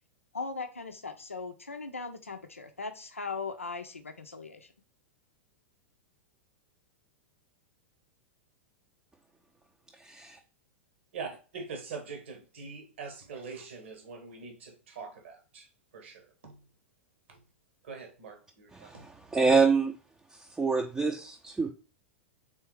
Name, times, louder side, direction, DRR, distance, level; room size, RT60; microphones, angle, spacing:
voice 1, 0.3-4.7, left 4 dB, 85° left, 0.5 m, -39 dB
voice 2, 10.0-10.4 18.8-18.9 19.3-19.9 20.6-21.7, right 4 dB, 10° right, 0.5 m, -25 dB
voice 3, 11.1-15.7 15.9-16.6 17.3-17.4 17.8-19.1, right 5 dB, 65° right, 1.3 m, -43 dB
4.3 x 3.4 x 3.2 m
figure-of-eight pair, 100°, 7 cm